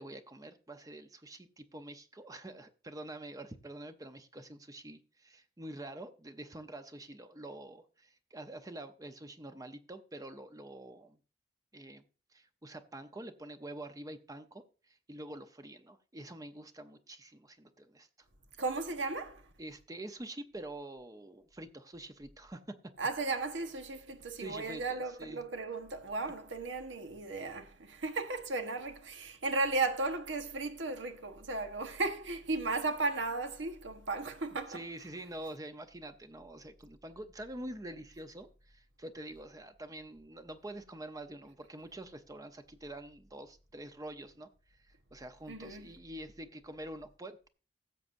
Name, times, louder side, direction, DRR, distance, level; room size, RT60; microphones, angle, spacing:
voice 1, 0.0-11.2 11.7-12.0 12.3-18.1 19.6-22.9 24.4-25.4 34.7-44.5 45.1-47.5, right 1 dB, 20° right, 0.7 m, -46 dB
voice 2, 18.6-19.4 23.0-34.8 45.5-45.9, right 3 dB, 80° right, 1.3 m, -35 dB
16.0 x 7.4 x 2.6 m
head